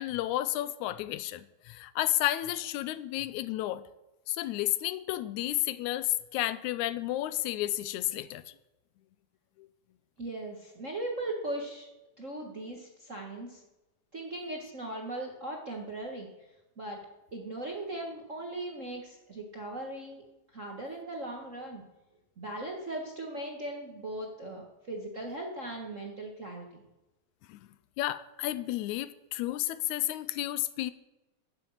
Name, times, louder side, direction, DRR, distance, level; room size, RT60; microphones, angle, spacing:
voice 1, 0.0-3.8 4.3-8.4 9.6-9.7 27.5-27.6 28.0-30.9, left 15 dB, 85° left, 15 dB, 2.0 m, -32 dB
voice 2, 10.2-11.9 12.2-13.6 14.1-16.3 16.8-17.0 17.3-20.2 20.5-21.8 22.4-26.8, right 2 dB, 45° right, 0 dB, 1.0 m, -38 dB
10.5 x 7.9 x 7.2 m, 1.0 s
omnidirectional pair, 3.4 m